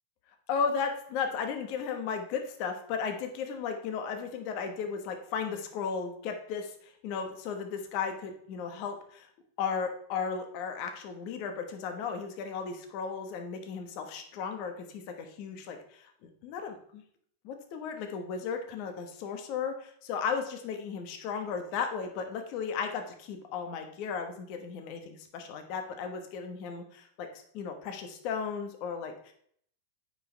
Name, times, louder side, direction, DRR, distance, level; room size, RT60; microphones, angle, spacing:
voice 1, 0.5-9.3 9.6-17.0 17.4-29.3, left 6 dB, 50° left, 5 dB, 1.3 m, -35 dB
8.7 x 5.1 x 3.3 m, 0.63 s
supercardioid pair, 130°, 0 cm